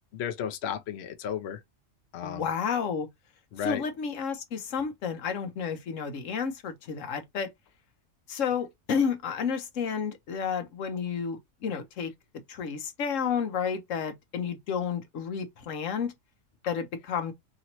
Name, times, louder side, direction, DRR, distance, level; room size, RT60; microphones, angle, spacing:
voice 1, 0.1-1.6 2.1-2.5 3.5-3.8, left 9 dB, 60° left, 0.9 m, -33 dB
voice 2, 2.2-3.1 3.6-7.5 8.3-12.1 12.5-16.1 16.7-17.3, left 6 dB, 80° left, 1.1 m, -31 dB
3.0 x 2.9 x 2.8 m
omnidirectional pair, 1.3 m